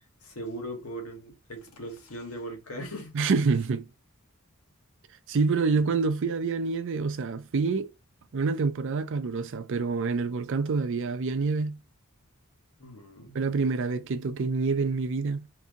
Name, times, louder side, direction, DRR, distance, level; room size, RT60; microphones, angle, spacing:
voice 1, 0.2-3.1 12.8-13.4, right 1 dB, 85° left, 1.2 m, -39 dB
voice 2, 3.1-3.9 5.3-7.9 8.3-11.8 13.3-15.5, right 4 dB, 60° right, 0.4 m, -27 dB
2.7 x 2.7 x 3.5 m
head